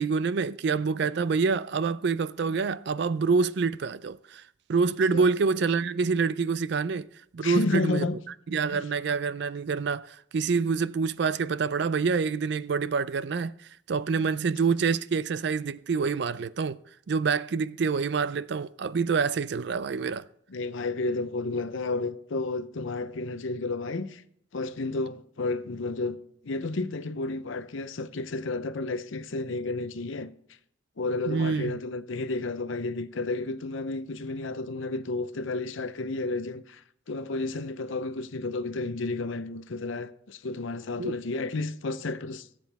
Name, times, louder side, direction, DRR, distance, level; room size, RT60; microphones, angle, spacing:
voice 1, 0.0-4.4 4.7-7.1 7.3-8.1 8.5-13.5 13.9-16.8 17.1-20.3 31.3-31.8 41.0-41.1, right 5 dB, 55° right, 0.4 m, -26 dB
voice 2, 7.4-8.2 8.7-8.8 20.5-24.2 24.5-26.2 26.4-30.3 31.0-42.5, left 3 dB, 70° left, 0.7 m, -31 dB
17.5 x 7.7 x 3.5 m
head